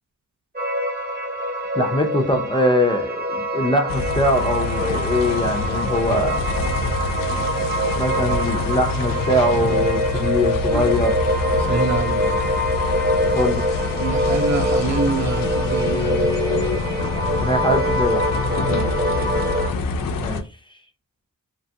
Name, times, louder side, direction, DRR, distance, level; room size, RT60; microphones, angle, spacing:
sound 1, 0.5-19.7, equal, 30° right, 0.8 m, -24 dB
voice 1, 1.7-6.4 7.3-7.5 7.9-11.1 13.3-13.7 17.4-18.3 20.2-20.4, left 1 dB, 15° left, 0.4 m, -22 dB
sound 2, 3.9-20.4, left 4 dB, 80° left, 0.5 m, -26 dB
voice 2, 10.6-10.9 11.6-12.3 14.0-16.4 18.7-18.9, right 5 dB, 55° right, 0.4 m, -27 dB
2.8 x 2.3 x 2.6 m
wide cardioid pair, 160°, 33 cm